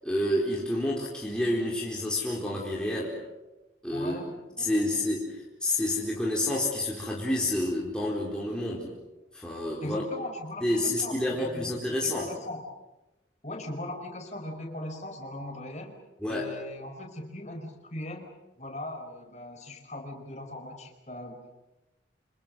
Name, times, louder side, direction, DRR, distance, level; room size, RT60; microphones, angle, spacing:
voice 1, 0.0-3.2 3.8-4.2 4.6-8.9 9.3-10.0 10.6-12.3 16.2-16.5, left 1 dB, 5° left, -4 dB, 4.5 m, -29 dB
voice 2, 3.9-4.8 9.8-12.6 13.4-15.9 16.3-18.3 18.6-21.6, left 1 dB, 40° left, 4 dB, 5.0 m, -39 dB
29.0 x 27.0 x 6.5 m, 1.0 s
head